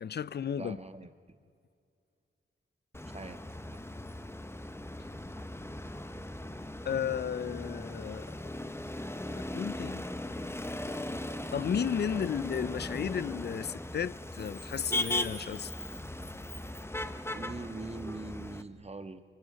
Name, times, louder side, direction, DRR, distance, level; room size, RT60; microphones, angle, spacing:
voice 1, 0.0-0.8 6.8-8.4 9.4-10.1 11.5-15.7, left 8 dB, 55° left, 0.5 m, -34 dB
voice 2, 0.6-1.1 3.1-3.4 3.7-3.8 12.1-12.3 17.3-19.2, right 2 dB, 30° right, 1.7 m, -42 dB
Motor vehicle (road), 2.9-18.6, left 1 dB, 10° left, 1.2 m, -38 dB
25.0 x 23.5 x 5.2 m
cardioid pair, 55°, 21 cm